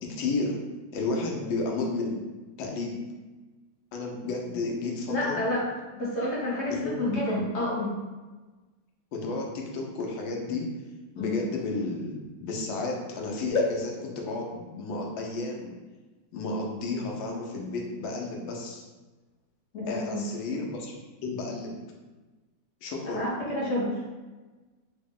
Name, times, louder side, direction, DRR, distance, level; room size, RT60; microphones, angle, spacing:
voice 1, 0.0-0.6 0.9-2.2 2.6-3.0 3.9-5.4 6.7-7.5 9.1-10.7 11.2-15.7 16.3-18.8 19.9-20.9 21.2-21.7 22.8-23.3, left 3 dB, 80° left, 0 dB, 1.4 m, -32 dB
voice 2, 5.1-5.6 5.9-7.9 11.1-11.3 19.7-20.2 23.0-23.9, left 1 dB, 50° left, -6 dB, 0.8 m, -29 dB
3.8 x 2.1 x 3.6 m, 1.2 s
omnidirectional pair, 2.1 m